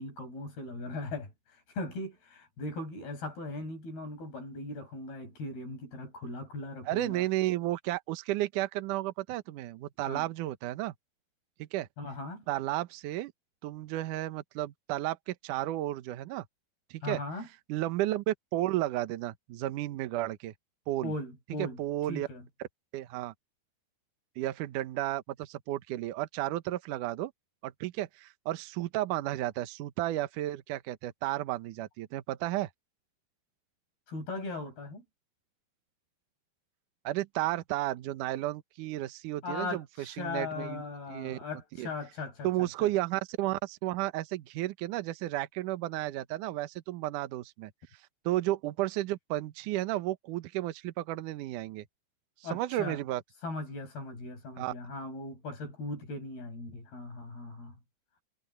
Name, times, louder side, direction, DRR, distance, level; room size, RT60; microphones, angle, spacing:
voice 1, 0.0-7.3 10.1-10.3 12.0-12.4 17.0-17.5 21.0-21.8 22.1-22.4 34.1-35.0 39.4-42.9 52.4-53.0 53.4-57.8, left 2 dB, 60° left, 9.6 m, -39 dB
voice 2, 6.9-10.9 11.6-11.9 12.5-13.3 13.6-16.5 16.9-17.2 17.7-20.5 20.9-21.1 21.6-22.3 22.9-23.3 24.4-27.3 27.6-32.7 37.0-40.8 41.1-41.4 41.8-41.9 42.4-47.7 48.3-51.9 52.5-53.2 54.6-54.7, right 15 dB, 75° right, 1.9 m, -33 dB
omnidirectional pair, 5.1 m